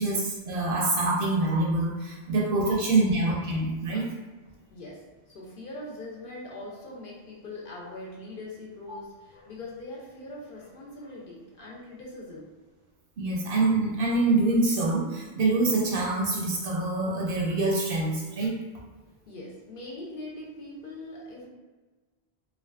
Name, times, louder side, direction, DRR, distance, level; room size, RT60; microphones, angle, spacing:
voice 1, 0.0-4.1 13.2-18.5, right 2 dB, 65° right, -2 dB, 0.7 m, -25 dB
voice 2, 4.7-5.0 5.3-12.5 19.0-21.5, left 2 dB, 60° left, -3 dB, 0.7 m, -42 dB
2.5 x 2.3 x 2.3 m, 1.3 s
omnidirectional pair, 1.1 m